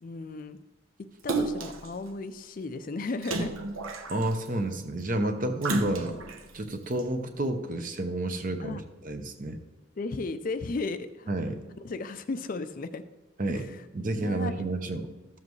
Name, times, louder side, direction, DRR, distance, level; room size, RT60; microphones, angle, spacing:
voice 1, 0.0-0.6 1.0-3.5 8.6-8.8 10.0-11.3 11.8-13.0 13.5-13.7 14.2-14.5, left 3 dB, 40° left, 11 dB, 0.4 m, -35 dB
Splash splatter, 1.3-1.9 3.2-4.5 5.6-6.4 7.0-7.1, right 2 dB, 80° right, 0.9 m, -30 dB
voice 2, 4.1-6.2 6.5-9.6 11.3-11.6 13.4-15.1, right 1 dB, 40° right, 6 dB, 0.8 m, -30 dB
13.5 x 7.4 x 3.2 m, 1.2 s
head